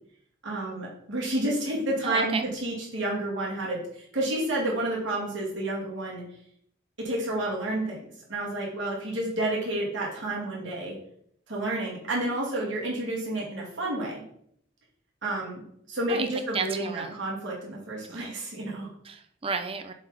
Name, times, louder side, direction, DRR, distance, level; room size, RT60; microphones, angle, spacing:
voice 1, 0.4-6.2 7.0-10.9 11.5-14.2 15.2-15.6 15.9-18.9, right 1 dB, 70° right, -4 dB, 2.6 m, -30 dB
voice 2, 2.0-2.4 16.1-16.3 16.5-17.2 18.1-18.3 19.0-19.9, right 5 dB, 30° right, 7 dB, 0.5 m, -32 dB
7.1 x 4.2 x 4.1 m, 0.69 s
head